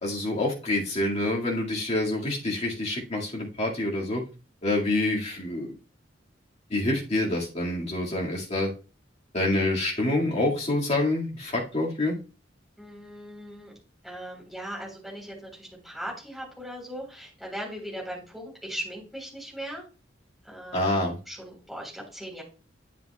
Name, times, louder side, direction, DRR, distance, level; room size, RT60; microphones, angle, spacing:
voice 1, 0.0-4.2 4.6-5.7 6.7-8.7 9.3-12.2 20.7-21.2, left 2 dB, 35° left, -2 dB, 2.0 m, -27 dB
voice 2, 12.8-13.7 14.0-19.9 20.5-21.0 21.3-22.4, equal, ahead, -3 dB, 3.8 m, -39 dB
10.0 x 7.3 x 2.3 m, 0.32 s
head